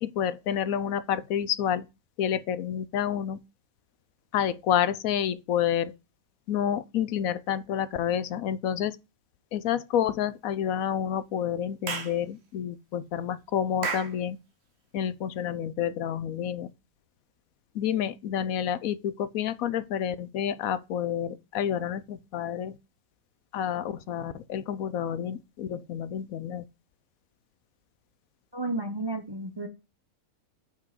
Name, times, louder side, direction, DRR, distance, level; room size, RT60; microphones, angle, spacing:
voice 1, 0.0-1.9 2.2-3.4 4.3-5.9 6.5-9.0 9.5-14.4 14.9-16.7 17.7-22.8 23.5-26.6, left 9 dB, 75° left, 1.0 m, -29 dB
Clapping / Chirp tweet, 11.9-12.2 13.8-14.2, right 5 dB, 50° right, 1.3 m, -31 dB
voice 2, 28.5-29.7, right 2 dB, 25° right, 0.6 m, -32 dB
5.9 x 4.6 x 6.5 m
omnidirectional pair, 1.5 m